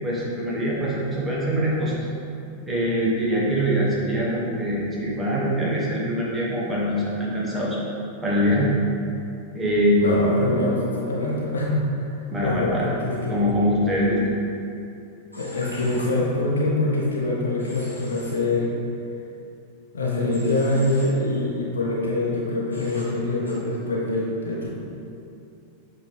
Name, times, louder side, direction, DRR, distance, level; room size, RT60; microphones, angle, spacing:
voice 1, 0.0-2.0 2.6-7.8 8.2-8.7 9.5-10.3 12.3-12.9 13.3-14.2, equal, 15° right, -6 dB, 1.3 m, -23 dB
voice 2, 10.0-12.1 12.4-13.4 15.3-18.7 19.9-24.7, left 2 dB, 70° left, -3 dB, 0.9 m, -24 dB
Human voice / Train, 15.3-16.0 17.6-18.3 20.3-21.1 22.7-23.0 23.5-23.6, equal, 85° right, 1.4 m, -42 dB
7.7 x 4.0 x 3.3 m, 2.6 s
figure-of-eight pair, 90°, 0 cm